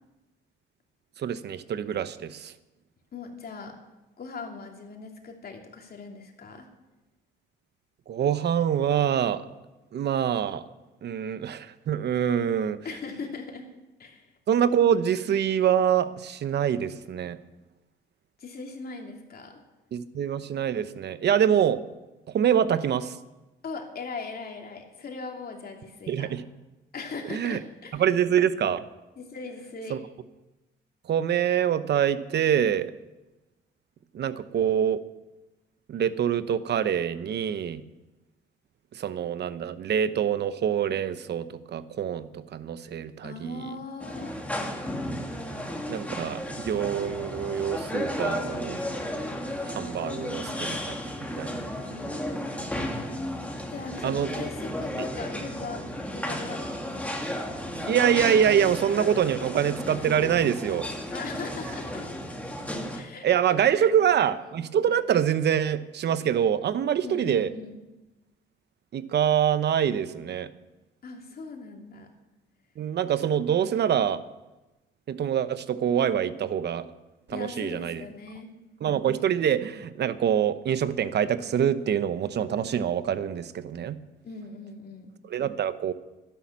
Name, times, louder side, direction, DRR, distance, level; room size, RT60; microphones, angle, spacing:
voice 1, 1.2-2.5 8.1-9.4 9.9-10.6 11.0-12.8 14.5-17.4 19.9-21.8 22.3-23.2 26.1-26.4 27.3-27.6 27.9-28.8 29.9-30.0 31.1-32.9 34.1-35.0 35.9-37.8 38.9-43.8 45.9-48.8 49.6-51.7 54.0-54.5 57.9-60.9 63.2-67.5 68.9-70.5 72.8-74.2 75.1-76.8 77.3-78.0 78.8-84.0 85.3-85.9, right 9 dB, 60° right, 13 dB, 0.9 m, -25 dB
voice 2, 3.1-3.7 4.2-6.7 12.8-13.7 14.0-14.3 18.4-19.6 23.6-26.3 26.9-28.0 29.2-30.0 43.2-44.3 50.1-50.5 51.8-52.6 53.7-55.8 56.1-57.3 61.1-62.1 62.9-63.3 63.8-63.9 64.3-64.4 67.0-67.8 71.0-72.1 77.3-78.5 84.2-85.1, left 4 dB, 50° left, 2 dB, 2.9 m, -40 dB
sound 1, 44.0-63.0, equal, 5° left, 2.1 m, -33 dB
12.0 x 11.5 x 7.3 m, 1.0 s
cardioid pair, 90°, 20 cm